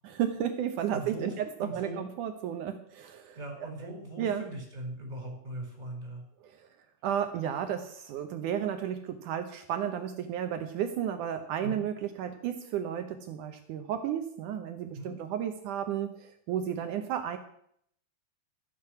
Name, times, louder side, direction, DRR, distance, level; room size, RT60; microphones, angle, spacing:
voice 1, 0.0-3.4 4.2-4.4 6.4-6.7 7.0-17.4, right 9 dB, 70° right, 7 dB, 2.1 m, -33 dB
voice 2, 0.9-1.3 1.6-2.1 3.4-6.2 11.6-11.8 14.9-15.1, right 1 dB, 10° right, 0 dB, 4.5 m, -40 dB
14.0 x 9.6 x 5.9 m, 0.67 s
omnidirectional pair, 4.3 m